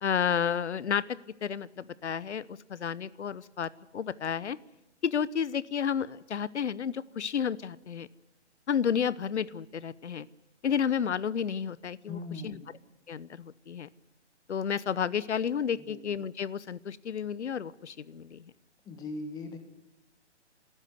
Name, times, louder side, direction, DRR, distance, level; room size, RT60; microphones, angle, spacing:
voice 1, 0.0-1.0 1.4-4.6 5.0-8.1 8.7-10.3 10.6-12.6 13.1-13.9 14.5-18.4, left 7 dB, 70° left, 19 dB, 0.9 m, -31 dB
voice 2, 12.1-12.7 15.8-16.0 18.8-19.6, left 3 dB, 10° left, 7 dB, 1.6 m, -39 dB
28.0 x 13.0 x 9.3 m, 0.91 s
hypercardioid pair, 150°, 35 cm